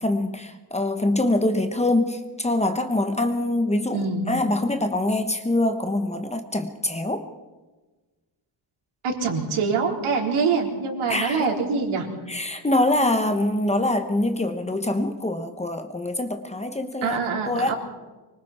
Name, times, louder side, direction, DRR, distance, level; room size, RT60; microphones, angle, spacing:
voice 1, 0.0-7.3 11.1-11.5 12.3-17.2 17.5-17.7, left 1 dB, 15° left, 7 dB, 1.1 m, -24 dB
voice 2, 3.9-4.2 9.0-12.1 17.0-17.7, right 5 dB, 85° right, 0 dB, 4.4 m, -24 dB
25.0 x 24.5 x 4.4 m, 1.2 s
wide cardioid pair, 165°, 48 cm